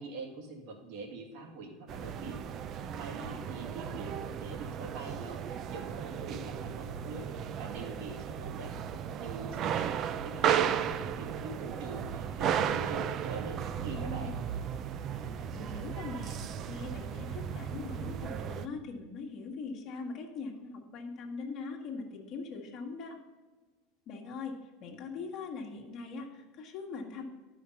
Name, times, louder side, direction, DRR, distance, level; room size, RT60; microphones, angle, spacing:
voice 1, 0.0-2.4 3.0-8.8 9.2-14.4, right 3 dB, 65° right, 2 dB, 2.0 m, -44 dB
sound 1, 1.9-18.7, right 8 dB, 40° right, 0.4 m, -35 dB
voice 2, 13.9-14.5 15.5-16.4 16.7-23.2 24.1-27.2, left 4 dB, 45° left, 1 dB, 1.3 m, -41 dB
11.0 x 5.0 x 5.6 m, 1.3 s
supercardioid pair, 135°, 0 cm